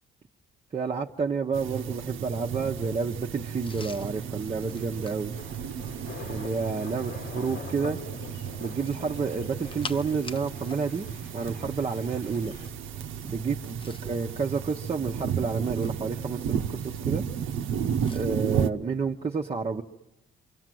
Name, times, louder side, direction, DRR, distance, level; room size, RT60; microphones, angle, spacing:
voice 1, 0.7-5.3 6.3-8.0 8.6-11.1 11.3-12.5 13.2-17.3 18.1-19.8, right 5 dB, 30° right, 1 dB, 0.9 m, -30 dB
sound 1, 1.5-18.7, right 8 dB, 90° right, 1.0 m, -33 dB
sound 2, 3.6-6.3 8.7-10.8 11.1-11.3 13.5-14.2 15.0-16.1 18.0-18.3, left 3 dB, 25° left, 0.9 m, -45 dB
sound 3, 4.7-12.7, left 5 dB, 85° left, 2.1 m, -44 dB
27.5 x 25.0 x 7.7 m, 0.93 s
cardioid pair, 90°, 20 cm